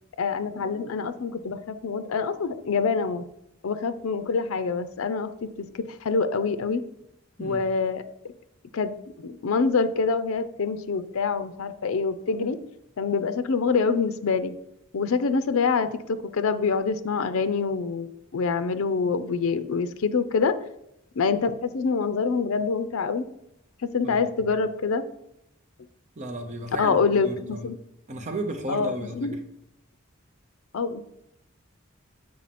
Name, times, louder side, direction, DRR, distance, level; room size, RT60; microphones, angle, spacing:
voice 1, 0.2-3.3 3.6-6.8 7.4-8.0 8.7-12.6 13.0-14.5 14.9-20.6 21.2-23.3 23.8-25.0 26.8-27.8 28.7-29.4 30.7-31.0, left 5 dB, 80° left, 12 dB, 0.5 m, -26 dB
voice 2, 24.0-24.5 26.1-27.7 28.1-29.4, right 1 dB, 35° right, 4 dB, 0.9 m, -34 dB
7.5 x 4.8 x 4.2 m, 0.84 s
head